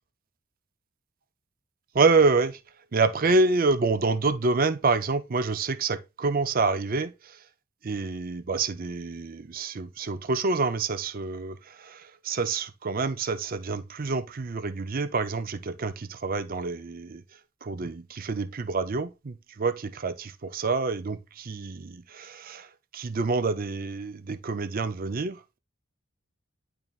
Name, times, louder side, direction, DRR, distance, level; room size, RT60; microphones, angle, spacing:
voice 1, 1.9-2.6 2.9-7.4 7.8-17.2 17.6-25.6, right 3 dB, 45° right, 0.5 m, -27 dB
10.5 x 4.4 x 2.4 m
head